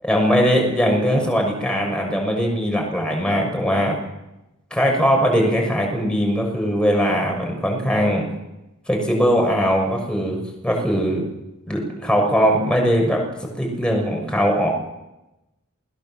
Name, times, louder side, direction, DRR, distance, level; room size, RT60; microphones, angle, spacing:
voice 1, 0.0-4.0 4.7-8.2 8.9-11.3 11.7-13.2 13.6-14.7, equal, 5° left, 1 dB, 6.5 m, -20 dB
28.0 x 21.0 x 7.5 m, 0.93 s
head